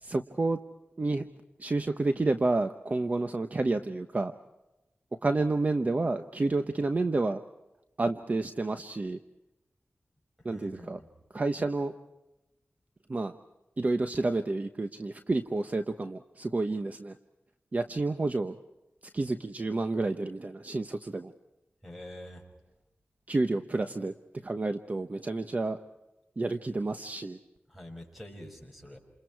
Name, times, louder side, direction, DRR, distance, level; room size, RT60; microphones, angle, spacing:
voice 1, 0.0-0.6 1.0-1.2 1.6-4.3 5.2-7.4 8.0-9.2 10.4-11.0 11.3-11.9 13.1-13.3 13.8-17.2 17.7-18.6 19.1-21.3 23.3-24.1 24.4-25.8 26.4-27.4, right 2 dB, 40° right, 7 dB, 1.0 m, -29 dB
voice 2, 10.5-11.1 21.8-22.4 27.7-29.0, left 1 dB, ahead, 3 dB, 6.5 m, -46 dB
29.0 x 28.0 x 4.7 m, 0.98 s
wide cardioid pair, 105°, 4 cm